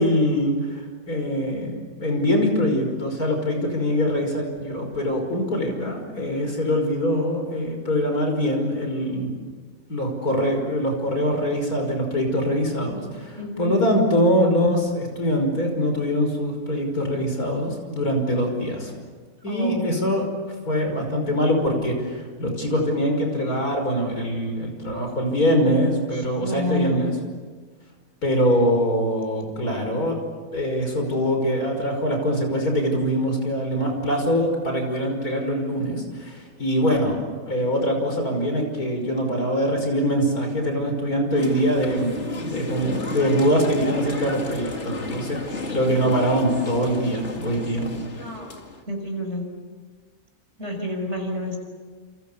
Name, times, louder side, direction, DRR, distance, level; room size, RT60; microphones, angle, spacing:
voice 1, 0.0-9.3 9.9-19.0 19.4-20.3 20.7-27.1 28.2-30.2 30.5-37.2 37.5-47.9, equal, 75° left, 3 dB, 6.0 m, -23 dB
voice 2, 13.4-13.8 19.5-19.8 25.6-25.8 26.4-27.1 48.2-48.5 48.9-49.5 50.6-51.6, left 1 dB, 45° right, 3 dB, 6.3 m, -29 dB
sound 1, 41.3-48.8, left 3 dB, 50° left, 2.4 m, -33 dB
29.0 x 28.5 x 7.0 m, 1.5 s
omnidirectional pair, 1.6 m